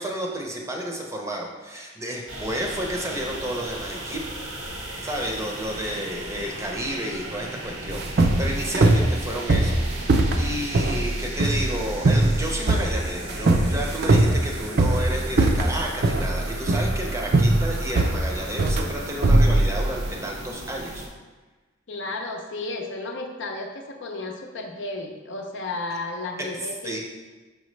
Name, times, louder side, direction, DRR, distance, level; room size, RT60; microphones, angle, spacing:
voice 1, 0.0-4.2 5.0-9.8 10.4-21.0 26.5-27.0, equal, 15° right, 0 dB, 0.7 m, -31 dB
sound 1, 2.3-21.1, right 1 dB, 90° right, 1.3 m, -37 dB
sound 2, 7.9-20.1, right 2 dB, 50° right, 0.5 m, -21 dB
voice 2, 21.9-27.0, left 2 dB, 65° left, 3 dB, 0.6 m, -33 dB
5.9 x 5.1 x 3.2 m, 1.3 s
head